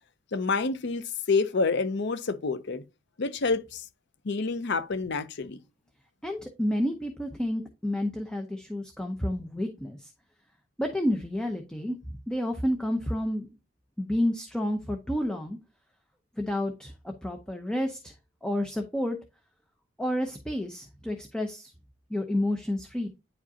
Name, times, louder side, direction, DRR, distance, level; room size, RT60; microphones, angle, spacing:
voice 1, 0.3-2.8 3.2-3.8 4.2-5.6, left 4 dB, 60° left, 0.6 m, -28 dB
voice 2, 6.2-10.1 10.8-12.0 12.3-13.5 14.0-15.6 16.4-18.1 18.4-19.2 20.0-21.7 22.1-23.1, left 1 dB, 5° left, 0.6 m, -30 dB
9.7 x 5.0 x 2.7 m
head